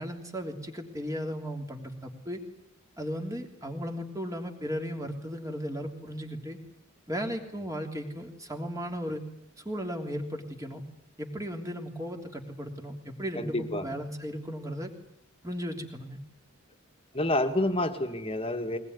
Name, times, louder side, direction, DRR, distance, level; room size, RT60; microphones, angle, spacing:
voice 1, 0.0-2.4 3.0-6.6 7.1-9.2 9.6-10.8 11.2-14.9 15.4-16.2, equal, 15° right, 3 dB, 3.2 m, -36 dB
voice 2, 13.4-13.9 17.1-18.8, left 1 dB, 25° left, 7 dB, 2.0 m, -28 dB
22.5 x 20.0 x 9.8 m, 0.74 s
head